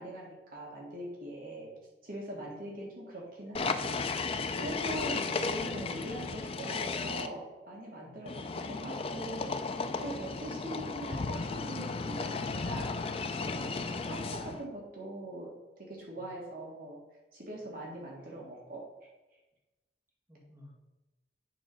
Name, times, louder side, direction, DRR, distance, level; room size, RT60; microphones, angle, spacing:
voice 1, 0.0-1.7 2.0-9.5 10.0-13.2 13.5-17.0 17.3-19.1, right 1 dB, 55° right, -3 dB, 1.7 m, -42 dB
sound 1, 3.5-7.3 8.3-14.6, left 4 dB, 30° left, 0.4 m, -35 dB
voice 2, 20.3-20.7, left 1 dB, 15° right, -6 dB, 2.1 m, -56 dB
8.5 x 3.7 x 5.3 m, 1.1 s
head